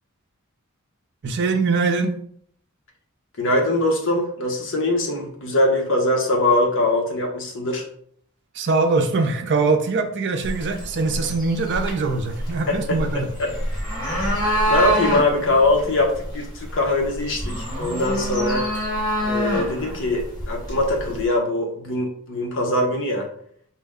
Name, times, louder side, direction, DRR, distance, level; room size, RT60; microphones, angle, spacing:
voice 1, 1.2-2.2 8.5-13.3, right 3 dB, 55° right, 6 dB, 0.5 m, -22 dB
voice 2, 3.4-7.8 12.7-13.0 13.4-13.5 14.0-18.7 19.2-23.3, left 2 dB, 60° left, 1 dB, 0.9 m, -22 dB
sound 1, 10.4-21.2, equal, 20° left, 1.4 m, -27 dB
4.4 x 2.1 x 3.5 m, 0.63 s
head